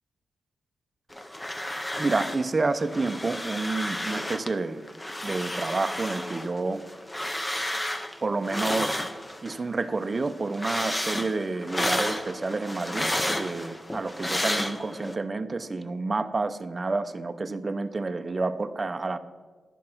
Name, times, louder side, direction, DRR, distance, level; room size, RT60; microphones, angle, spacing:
sound 1, 1.1-2.5 2.7-4.5 4.9-9.6 10.0-15.1, left 1 dB, 15° left, 0.6 m, -32 dB
voice 1, 2.0-4.8 5.2-6.9 8.2-9.0 9.4-19.2, right 3 dB, 35° right, 12 dB, 0.5 m, -29 dB
11.0 x 7.5 x 4.4 m, 1.4 s
cardioid pair, 95°, 0 cm